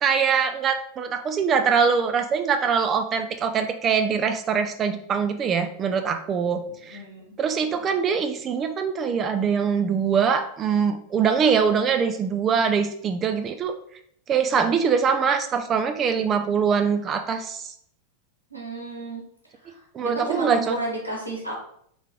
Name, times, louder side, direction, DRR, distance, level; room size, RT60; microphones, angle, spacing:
voice 1, 0.0-7.0 7.4-13.7 14.3-17.7 19.9-20.8, right 6 dB, 25° right, 7 dB, 0.4 m, -23 dB
voice 2, 6.9-7.3 18.5-19.2 19.6-21.5, right 2 dB, 90° left, -3 dB, 1.2 m, -32 dB
3.4 x 3.1 x 3.6 m, 0.67 s
figure-of-eight pair, 90°, 0 cm